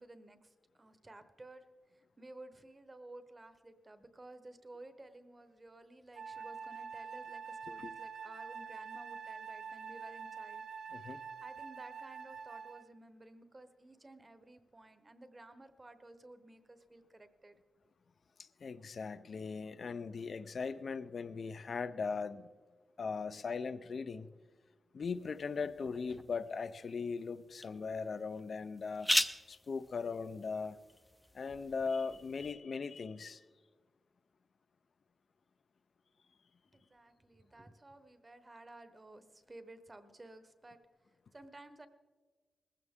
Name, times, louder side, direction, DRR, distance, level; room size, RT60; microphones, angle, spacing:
voice 1, 0.0-1.7 1.9-10.7 11.1-17.6 36.7-40.8 41.3-41.9, right 2 dB, 20° right, 10 dB, 0.9 m, -54 dB
Wind instrument woodwind instrument, 6.2-12.9, right 6 dB, 80° right, 1.1 m, -46 dB
voice 2, 18.4-22.5 23.0-24.3 24.9-29.1 29.5-30.8 31.3-33.4, left 5 dB, 50° left, 14 dB, 0.5 m, -39 dB
sound 1, 25.0-32.5, left 1 dB, 10° left, 0.5 m, -40 dB
20.5 x 16.0 x 3.6 m, 1.4 s
wide cardioid pair, 165°, 0 cm